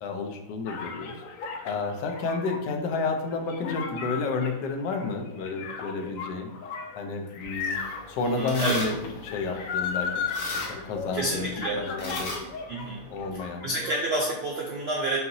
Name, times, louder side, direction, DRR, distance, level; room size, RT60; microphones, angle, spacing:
voice 1, 0.0-1.2 1.6-6.5 7.0-7.8 8.1-9.0 9.2-10.2 10.5-12.4 13.1-13.7, left 4 dB, 90° left, 4 dB, 1.3 m, -31 dB
sound 1, 0.7-12.9 13.1-14.0, left 6 dB, 70° left, 0.8 m, -36 dB
sound 2, 7.4-13.5, left 1 dB, 55° left, 1.2 m, -40 dB
voice 2, 8.3-8.8 11.1-11.8 12.7-15.2, right 2 dB, 75° right, -2 dB, 0.5 m, -29 dB
5.8 x 2.8 x 2.6 m, 0.98 s
omnidirectional pair, 1.8 m